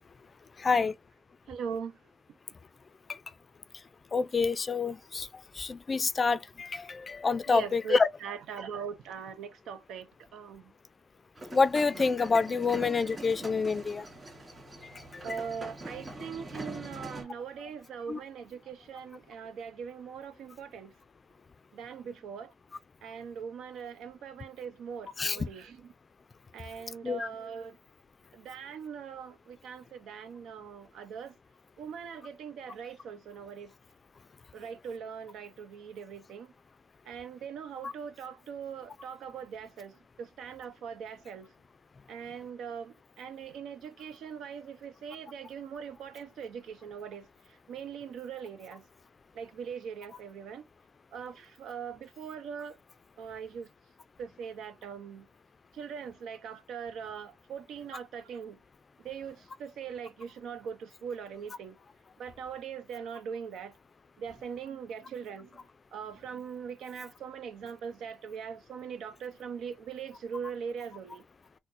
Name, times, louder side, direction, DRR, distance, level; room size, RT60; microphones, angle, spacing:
voice 1, 0.6-0.9 3.1-3.2 4.1-5.3 5.6-8.1 11.5-14.1 15.1-15.4 18.1-18.2 25.2-25.4 27.0-27.3 37.8-37.9, left 4 dB, 30° left, 0.4 m, -27 dB
voice 2, 1.5-2.0 7.5-10.7 15.2-20.9 21.7-22.5 23.0-25.9 26.5-27.8 28.3-31.4 31.8-33.7 34.5-36.5 37.1-41.5 42.1-48.9 49.3-50.7 51.1-52.8 53.2-53.7 54.2-55.3 55.7-58.6 59.0-61.8 62.2-63.7 64.2-65.6 65.9-71.3, right 7 dB, 80° right, 0.6 m, -41 dB
sound 1, 11.4-17.2, right 2 dB, 25° right, 2.1 m, -43 dB
4.2 x 2.1 x 2.5 m
cardioid pair, 110°, 0 cm